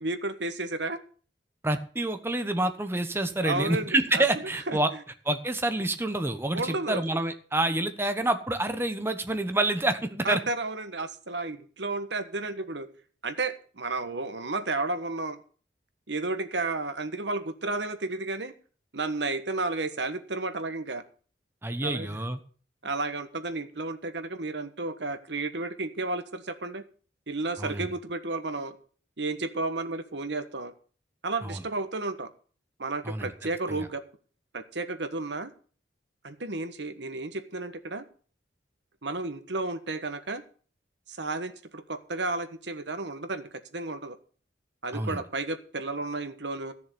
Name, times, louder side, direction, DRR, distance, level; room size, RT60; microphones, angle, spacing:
voice 1, 0.0-1.0 3.4-4.2 4.7-5.0 6.5-7.0 10.2-12.9 13.2-15.4 16.1-18.5 18.9-21.0 21.8-22.2 22.8-26.8 27.3-28.8 29.2-30.7 31.2-32.3 32.8-34.0 34.5-35.5 36.2-38.0 39.0-40.4 41.1-44.2 44.8-46.7, right 3 dB, 75° right, 9 dB, 1.4 m, -32 dB
voice 2, 1.6-4.9 5.3-10.4 21.6-22.4 27.6-27.9 31.4-31.6 33.0-33.3 33.7-33.9 44.9-45.2, right 2 dB, 15° right, 8 dB, 1.1 m, -28 dB
13.5 x 7.0 x 6.9 m, 0.41 s
head